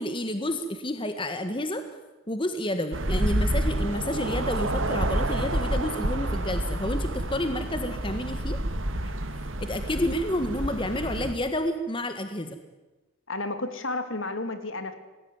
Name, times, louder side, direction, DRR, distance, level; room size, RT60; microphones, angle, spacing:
voice 1, 0.0-1.8 2.3-8.6 9.6-12.6, left 1 dB, 25° left, 8 dB, 1.6 m, -30 dB
sound 1, 2.9-11.3, right 1 dB, 65° right, 2.5 m, -29 dB
voice 2, 13.3-14.9, left 2 dB, 65° left, 8 dB, 3.0 m, -32 dB
28.5 x 20.5 x 9.6 m, 1.1 s
head